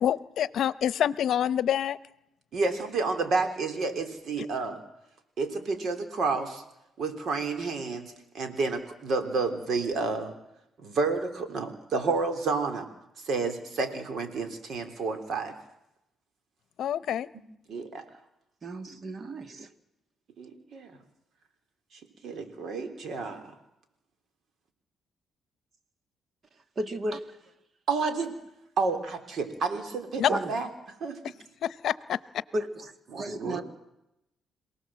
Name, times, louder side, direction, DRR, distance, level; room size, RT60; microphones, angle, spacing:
voice 1, 0.0-2.0 16.8-17.3 30.2-30.3 31.6-32.2, left 10 dB, 70° left, 0.8 m, -26 dB
voice 2, 2.5-4.8 5.4-6.6 7.0-10.3 10.8-12.9 13.2-15.6 17.7-18.2 20.4-21.0 21.9-23.6 27.9-28.3 28.8-31.3 33.1-33.6, right 4 dB, 60° right, 3.7 m, -30 dB
voice 3, 18.6-19.7 26.8-27.2 30.3-30.5 32.5-33.6, right 1 dB, 40° right, 2.1 m, -33 dB
27.5 x 18.5 x 7.7 m
cardioid pair, 90°, 0 cm